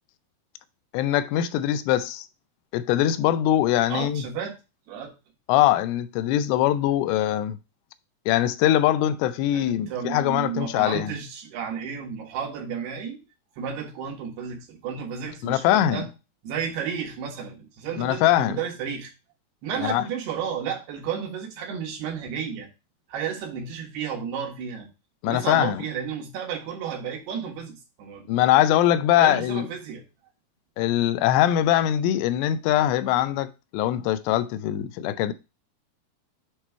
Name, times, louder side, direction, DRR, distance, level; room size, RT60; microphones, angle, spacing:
voice 1, 0.9-2.3 2.7-4.2 5.5-7.6 8.3-11.1 15.4-16.0 18.0-18.6 19.8-20.0 25.2-25.8 28.3-29.7 30.8-35.3, left 12 dB, 85° left, 2.7 m, -22 dB
voice 2, 3.9-4.5 4.9-5.1 9.5-13.2 13.5-16.1 16.4-19.1 19.6-22.7 23.1-24.9 25.2-28.3 29.2-30.0, right 7 dB, 75° right, 3.3 m, -32 dB
8.3 x 3.0 x 4.4 m
omnidirectional pair, 4.8 m